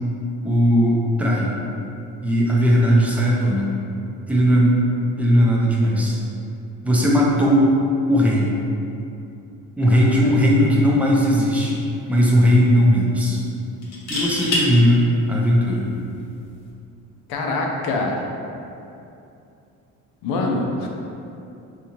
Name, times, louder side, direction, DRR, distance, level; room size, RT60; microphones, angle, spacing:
voice 1, 0.4-1.5 2.2-3.7 4.3-4.8 5.2-6.2 6.8-7.7 8.1-8.5 9.8-11.8 12.1-13.4 14.1-15.9, equal, 5° right, -4 dB, 0.5 m, -17 dB
sound 1, 11.0-11.2 11.6-11.7 13.8-14.7 16.5-16.7, left 1 dB, 45° left, 0.9 m, -25 dB
voice 2, 17.3-18.2 20.2-20.9, left 2 dB, 80° left, 1 dB, 0.6 m, -24 dB
3.7 x 2.8 x 2.9 m, 2.7 s
cardioid pair, 110°, 36 cm